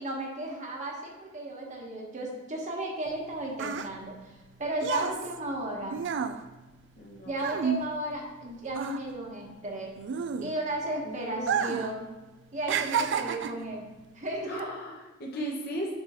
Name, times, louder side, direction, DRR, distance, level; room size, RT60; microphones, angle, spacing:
voice 1, 0.0-6.0 7.2-9.9 10.4-12.1 12.5-13.9 14.1-14.7, right 1 dB, 40° right, -1 dB, 1.2 m, -34 dB
sound 1, 3.1-8.4 8.7-10.9 11.4-12.0 12.2-13.7 14.4-14.6, right 6 dB, 65° right, 0.4 m, -31 dB
voice 2, 7.0-7.4 11.0-11.7 14.5-16.0, equal, 55° left, -2 dB, 1.3 m, -37 dB
7.4 x 4.9 x 3.7 m, 1.2 s
head